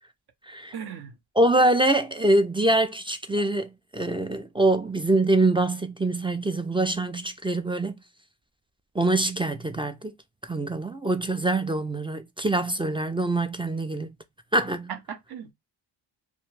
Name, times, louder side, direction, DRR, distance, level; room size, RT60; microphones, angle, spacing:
voice 1, 0.7-1.1 14.9-15.5, right 8 dB, 55° right, 0.8 m, -37 dB
voice 2, 1.4-7.9 9.0-10.1 10.5-14.1 14.5-14.9, right 2 dB, 15° right, 0.3 m, -24 dB
2.5 x 2.2 x 3.0 m
cardioid pair, 65°, 46 cm